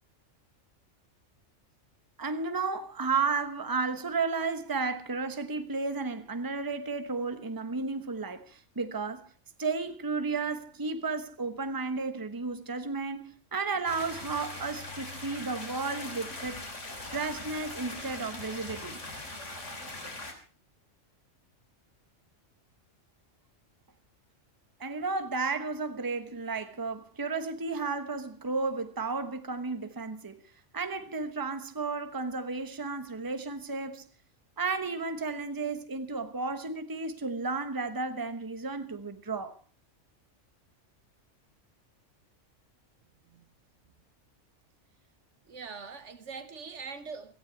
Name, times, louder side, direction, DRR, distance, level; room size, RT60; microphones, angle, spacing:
voice 1, 2.2-9.3 9.6-16.6 17.1-19.0 24.8-30.4 30.7-34.0 34.6-39.5, right 4 dB, 20° right, 1.1 m, -33 dB
sound 1, 13.9-20.3, left 2 dB, 75° left, 3.6 m, -41 dB
voice 2, 45.5-47.3, right 5 dB, 70° right, 1.6 m, -42 dB
17.0 x 15.0 x 4.6 m
omnidirectional pair, 1.3 m